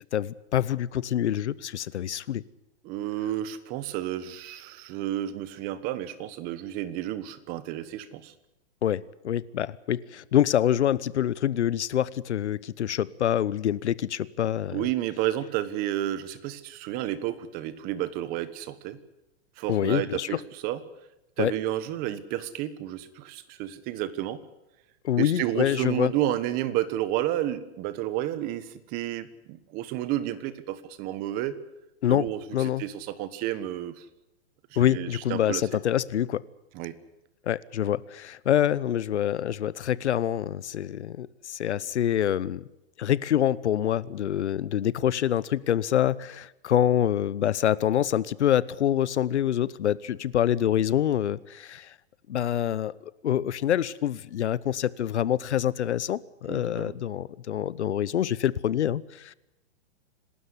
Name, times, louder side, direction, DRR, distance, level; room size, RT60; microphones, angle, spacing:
voice 1, 0.1-2.4 8.8-14.9 19.7-20.3 21.4-21.5 25.0-26.1 32.0-32.3 32.5-32.8 34.8-36.4 37.5-42.6 43.0-51.9 52.3-52.9 53.2-59.3, left 10 dB, 90° left, 20 dB, 1.0 m, -26 dB
voice 2, 2.8-8.3 14.7-19.0 19.6-20.8 21.4-24.4 25.2-31.6 32.1-34.0 34.8-35.6 36.7-36.9 56.5-57.0, right 13 dB, 25° right, 15 dB, 1.3 m, -31 dB
27.0 x 13.0 x 9.7 m, 0.90 s
hypercardioid pair, 155°, 33 cm